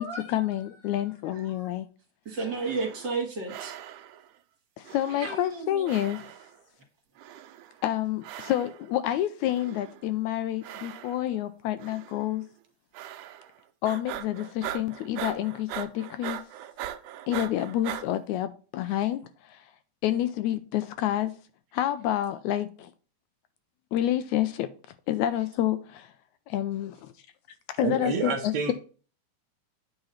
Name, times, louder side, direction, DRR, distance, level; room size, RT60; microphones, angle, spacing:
voice 1, 0.0-1.9 4.8-6.3 7.8-12.4 13.8-16.4 17.3-19.7 20.0-21.3 21.7-22.9 23.9-24.7 25.1-26.1 26.5-27.1 27.8-28.7, left 12 dB, 80° left, 1.8 m, -28 dB
voice 2, 1.3-1.7 2.3-3.7 5.1-5.9, right 3 dB, 40° right, 2.3 m, -33 dB
sound 1, 2.5-3.2 3.5-4.3 4.8-5.6 5.9-6.6 7.2-7.8 8.2-8.9 9.5-10.1 10.6-11.4 11.8-12.3 12.9-13.6 13.8-18.1, right 12 dB, 85° right, 2.2 m, -40 dB
voice 3, 27.8-28.7, right 5 dB, 70° right, 1.8 m, -28 dB
8.9 x 4.0 x 5.6 m
omnidirectional pair, 3.6 m